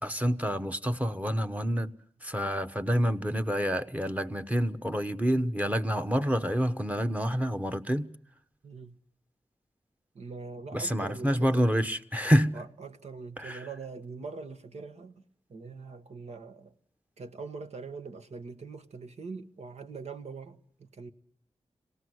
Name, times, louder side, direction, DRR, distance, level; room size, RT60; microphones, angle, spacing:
voice 1, 0.0-1.9 2.2-8.1 10.7-12.6 13.4-13.6, equal, 15° right, 1.1 m, -28 dB
voice 2, 8.6-9.0 10.1-11.6 12.5-15.2 15.5-16.7 17.2-21.1, right 4 dB, 75° right, 1.4 m, -43 dB
26.0 x 18.5 x 7.9 m
wide cardioid pair, 80°, 11 cm